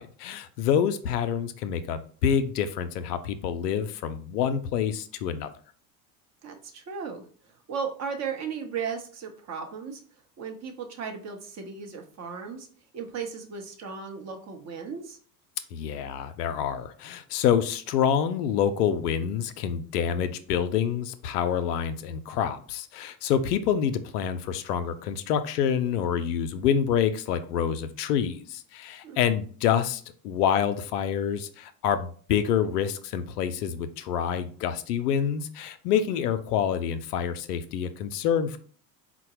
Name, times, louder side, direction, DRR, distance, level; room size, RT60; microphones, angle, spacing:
voice 1, 0.0-5.5 15.7-38.6, left 8 dB, 70° left, 0.5 m, -27 dB
voice 2, 6.4-7.2 7.7-10.0 10.4-12.7 12.9-15.2 29.0-29.3 36.1-36.2, right 6 dB, 35° right, 0.7 m, -36 dB
3.9 x 2.1 x 2.9 m
hypercardioid pair, 75°, 50 cm